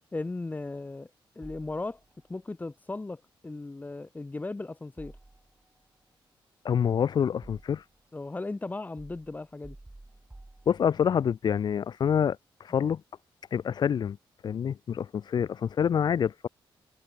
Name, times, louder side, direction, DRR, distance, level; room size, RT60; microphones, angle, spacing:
voice 1, 0.1-1.1 1.4-2.0 2.3-5.2 8.1-9.8, left 2 dB, 20° left, 2.3 m, -36 dB
sound 1, 1.4-2.3 5.0-5.8 6.7-8.1 9.0-11.2, right 2 dB, 10° right, 1.4 m, -51 dB
voice 2, 6.6-7.8 10.7-13.0 13.5-14.2 14.4-16.5, left 8 dB, 50° left, 0.6 m, -27 dB
wide cardioid pair, 125°, 9 cm